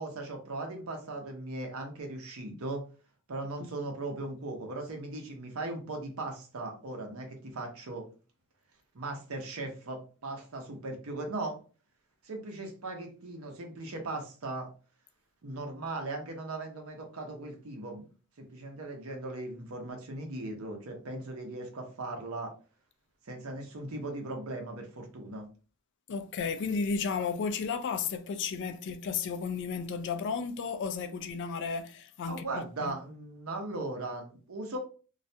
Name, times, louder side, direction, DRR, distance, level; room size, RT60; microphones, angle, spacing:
voice 1, 0.0-2.8 3.3-8.0 8.9-11.6 12.2-14.7 15.4-18.1 18.4-22.5 23.3-25.5 32.2-34.8, right 2 dB, 80° right, 0.7 m, -38 dB
voice 2, 26.1-32.9, left 5 dB, 55° left, 0.3 m, -33 dB
2.3 x 2.1 x 2.7 m
head